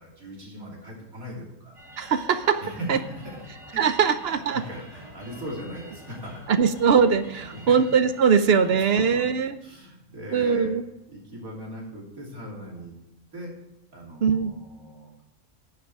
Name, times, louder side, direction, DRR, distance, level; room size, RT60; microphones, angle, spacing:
voice 1, 0.0-1.8 2.6-3.4 3.7-3.8 4.3-6.4 7.3-7.8 8.9-9.3 9.6-10.7 11.1-12.9 13.3-13.5 13.9-15.2, equal, 75° right, -2 dB, 3.5 m, -39 dB
sound 1, 1.7-9.2, left 1 dB, 55° left, 4.9 m, -47 dB
voice 2, 2.0-2.6 2.9-3.0 3.8-4.6 6.5-9.5 10.3-10.8 14.2-14.5, right 6 dB, 55° right, 11 dB, 0.7 m, -21 dB
11.5 x 7.4 x 4.8 m, 0.85 s
omnidirectional pair, 1.5 m